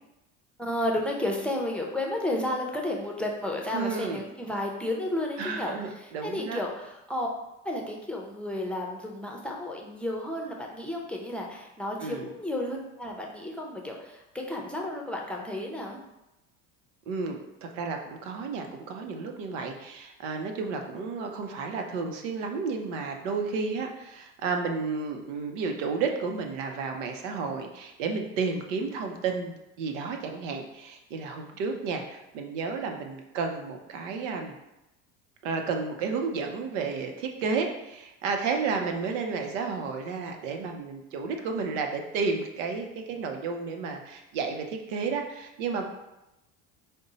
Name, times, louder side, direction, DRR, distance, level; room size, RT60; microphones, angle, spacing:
voice 1, 0.6-7.3 7.6-16.0, left 1 dB, 5° left, -1 dB, 0.6 m, -32 dB
voice 2, 3.7-4.2 5.4-6.6 12.0-12.3 17.1-34.6 35.4-45.8, right 4 dB, 90° right, 4 dB, 0.7 m, -32 dB
5.1 x 2.1 x 3.9 m, 0.93 s
supercardioid pair, 100°, 37 cm